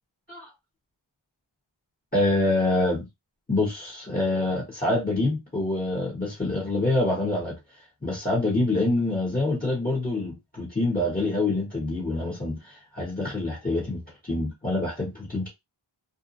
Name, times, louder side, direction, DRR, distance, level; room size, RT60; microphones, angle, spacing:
voice 1, 2.1-3.0 3.5-7.6 8.0-15.5, left 2 dB, 20° left, 1.1 m, -26 dB
2.7 x 2.2 x 2.6 m
wide cardioid pair, 40°, 49 cm